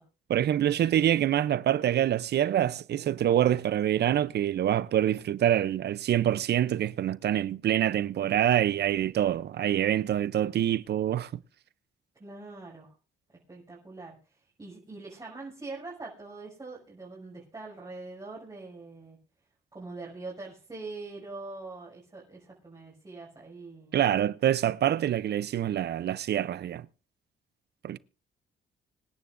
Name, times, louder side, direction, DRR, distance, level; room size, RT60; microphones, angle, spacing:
voice 1, 0.3-11.3 23.9-26.9 27.8-28.0, right 11 dB, 55° right, 0.5 m, -26 dB
voice 2, 12.2-12.9 13.5-19.2 19.7-24.1, right 3 dB, 20° right, 6.2 m, -43 dB
26.0 x 10.5 x 2.5 m
cardioid pair, 90°, 20 cm